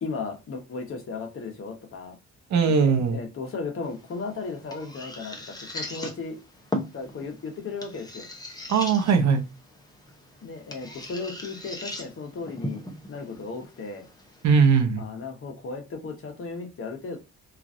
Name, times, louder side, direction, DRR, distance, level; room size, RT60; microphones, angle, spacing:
voice 1, 0.0-2.2 2.7-6.4 6.9-8.3 10.4-12.8 13.1-14.0 15.0-17.2, left 4 dB, 45° left, 3 dB, 1.0 m, -35 dB
voice 2, 2.5-3.2 8.7-9.4 14.4-15.0, right 5 dB, 65° right, 5 dB, 0.8 m, -20 dB
sound 1, 3.8-14.8, left 1 dB, 15° left, 0.7 m, -39 dB
3.0 x 2.5 x 2.5 m, 0.26 s
cardioid pair, 90°, 30 cm